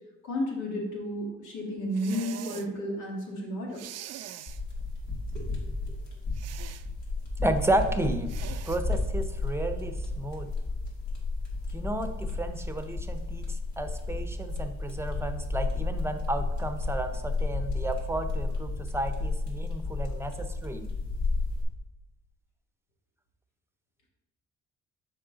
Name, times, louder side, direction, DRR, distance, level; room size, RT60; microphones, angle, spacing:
voice 1, 0.2-3.8 5.3-5.5, equal, 85° left, -1 dB, 2.1 m, -32 dB
sound 1, 1.9-2.7 3.7-4.6 6.3-6.9 8.3-8.8, right 12 dB, 60° right, 0.4 m, -43 dB
sound 2, 4.5-21.6, left 3 dB, 70° left, 2.2 m, -32 dB
voice 2, 7.4-8.3 8.6-10.5 11.7-20.9, right 1 dB, 10° right, 7 dB, 0.7 m, -32 dB
7.5 x 4.8 x 3.9 m, 0.99 s
cardioid pair, 90°, 30 cm